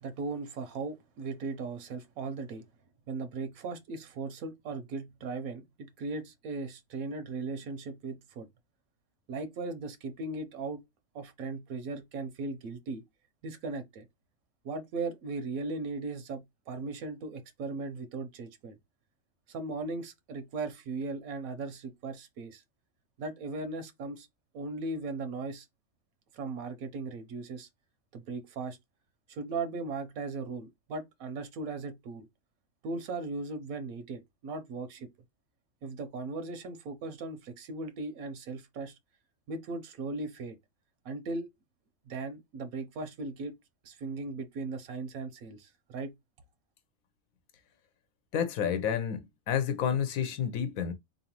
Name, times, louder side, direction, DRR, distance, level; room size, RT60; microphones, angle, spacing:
voice 1, 0.0-2.6 3.1-8.5 9.3-10.8 11.1-13.0 13.4-14.0 14.6-18.8 19.5-22.6 23.2-24.3 24.5-25.7 26.3-27.7 28.1-28.8 29.3-32.3 32.8-35.1 35.8-39.0 39.5-40.6 41.0-41.5 42.1-43.6 43.8-46.1, right 3 dB, 85° right, 1.1 m, -38 dB
voice 2, 48.3-50.9, left 8 dB, 80° left, 1.2 m, -30 dB
4.1 x 3.1 x 2.9 m
omnidirectional pair, 1.4 m